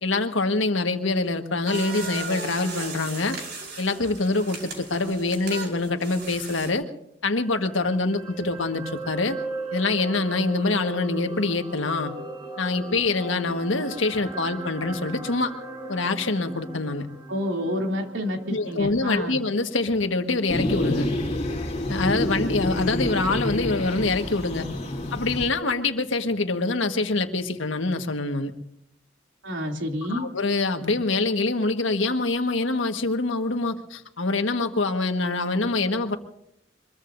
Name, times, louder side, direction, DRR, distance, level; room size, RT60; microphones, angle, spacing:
voice 1, 0.0-3.4 3.8-6.9 7.2-9.4 9.7-12.1 12.6-15.5 15.9-17.1 18.5-21.1 21.9-24.7 25.1-28.5 30.1-36.2, left 3 dB, 85° left, 6 dB, 1.5 m, -25 dB
sound 1, 1.6-6.7, right 4 dB, 55° right, 4.6 m, -36 dB
sound 2, 7.3-19.7 20.0-20.2, right 3 dB, 30° right, 1.6 m, -38 dB
voice 2, 17.3-19.4 29.4-30.3, left 1 dB, 80° right, 2 dB, 2.9 m, -29 dB
sound 3, 20.5-25.5, left 1 dB, 35° left, 2.9 m, -28 dB
25.0 x 21.5 x 2.6 m, 0.76 s
head